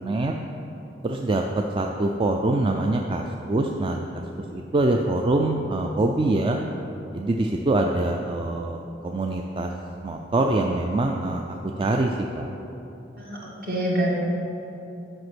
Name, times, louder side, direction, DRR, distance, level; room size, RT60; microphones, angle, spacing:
voice 1, 0.0-0.3 1.0-4.2 4.5-6.6 7.1-9.7 10.0-12.5, right 2 dB, 30° right, 2 dB, 0.4 m, -24 dB
voice 2, 13.2-14.1, equal, 55° right, -5 dB, 2.1 m, -26 dB
7.9 x 5.7 x 6.1 m, 3.0 s
head